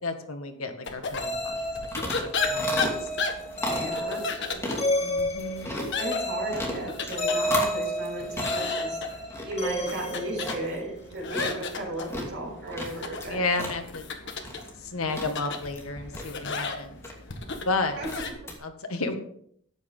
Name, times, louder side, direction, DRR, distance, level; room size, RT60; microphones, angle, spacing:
voice 1, 0.0-1.6 2.0-3.1 5.0-5.7 13.2-14.1 14.8-17.0 17.6-18.0 18.6-19.2, left 3 dB, 90° left, 6 dB, 1.7 m, -32 dB
sound 1, 0.9-18.3, left 4 dB, 60° left, 1.6 m, -35 dB
sound 2, 1.2-11.0, equal, 30° left, 2.1 m, -31 dB
sound 3, 1.5-18.6, left 1 dB, 15° left, 2.5 m, -37 dB
voice 2, 3.6-4.6 6.0-9.0 9.4-13.5 18.0-18.1, right 1 dB, 55° right, -2 dB, 6.1 m, -35 dB
13.5 x 9.5 x 3.9 m, 0.66 s
head